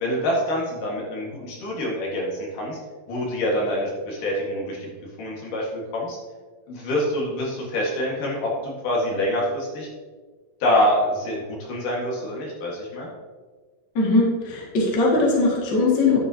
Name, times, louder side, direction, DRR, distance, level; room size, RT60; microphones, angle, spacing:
voice 1, 0.0-2.8 3.1-4.9 5.2-6.2 6.7-9.9 10.6-13.1, left 1 dB, 65° left, -3 dB, 3.1 m, -26 dB
voice 2, 13.9-16.2, left 3 dB, 35° left, -4 dB, 2.0 m, -20 dB
11.5 x 8.6 x 2.8 m, 1.4 s
omnidirectional pair, 4.3 m